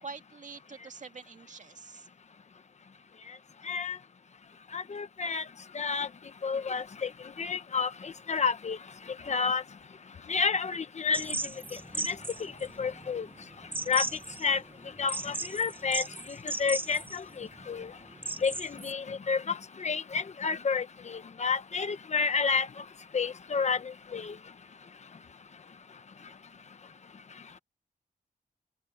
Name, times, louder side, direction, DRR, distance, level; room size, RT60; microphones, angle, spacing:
voice 1, 0.0-2.1, right 4 dB, 50° right, 2.1 m, -45 dB
voice 2, 4.7-5.4 5.7-6.1 6.4-7.1 7.4-8.8 9.3-9.6 10.3-11.3 12.1-12.2 12.8-13.3 13.9-14.0 14.4-14.6 15.0-16.0 16.6-17.9 18.4-22.7 23.1-23.8 24.1-24.3, left 5 dB, 45° left, 1.0 m, -30 dB
sound 1, 11.1-18.9, right 2 dB, 15° right, 0.6 m, -37 dB
open air
wide cardioid pair, 175°, 16 cm